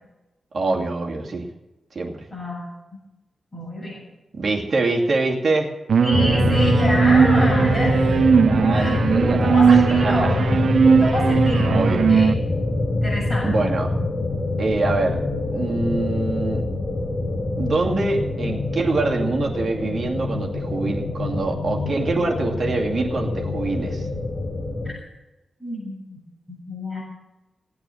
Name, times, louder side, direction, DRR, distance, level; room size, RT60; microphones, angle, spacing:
voice 1, 0.5-1.5 1.9-2.3 4.3-5.7 8.4-10.4 11.7-12.1 13.4-13.9 14.6-15.2 15.5-16.7 17.6-24.1, right 3 dB, 45° right, 0 dB, 2.5 m, -25 dB
voice 2, 2.3-2.7 3.5-4.0 6.0-8.4 8.7-12.3 13.0-13.7 24.8-24.9 25.6-26.2 26.5-27.0, left 1 dB, 10° left, -5 dB, 7.6 m, -29 dB
sound 1, 5.9-12.3, right 6 dB, 65° right, 0.5 m, -18 dB
sound 2, 6.1-24.9, left 2 dB, 35° left, 1.9 m, -24 dB
17.5 x 8.9 x 7.9 m, 1.0 s
wide cardioid pair, 145°, 0 cm